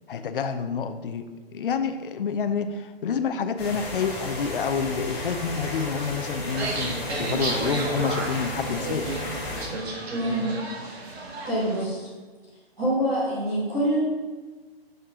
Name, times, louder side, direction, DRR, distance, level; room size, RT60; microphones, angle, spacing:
voice 1, 0.1-1.2 1.5-9.1, left 6 dB, 60° left, 8 dB, 0.6 m, -28 dB
sound 1, 3.6-9.7, left 2 dB, 15° left, 1.3 m, -34 dB
sound 2, 6.5-11.8, right 2 dB, 90° right, 1.7 m, -32 dB
voice 2, 10.1-10.5 11.1-12.1 12.8-14.0, right 1 dB, 10° right, -10 dB, 1.7 m, -26 dB
7.0 x 6.6 x 3.7 m, 1.3 s
hypercardioid pair, 180°, 31 cm